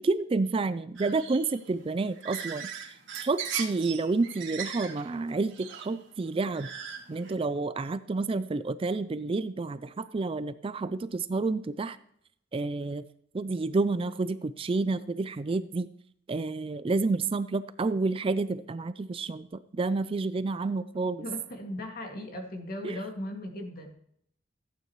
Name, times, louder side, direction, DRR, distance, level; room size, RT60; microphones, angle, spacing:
voice 1, 0.0-2.9 3.2-6.7 7.1-12.0 12.5-13.0 13.3-15.9 16.3-21.2 22.8-23.0, right 3 dB, 30° right, 14 dB, 0.4 m, -29 dB
sound 1, 0.9-7.3, right 7 dB, 80° right, 2.2 m, -39 dB
voice 2, 21.2-23.9, left 1 dB, 50° left, 3 dB, 2.2 m, -37 dB
14.5 x 9.0 x 3.1 m, 0.68 s
head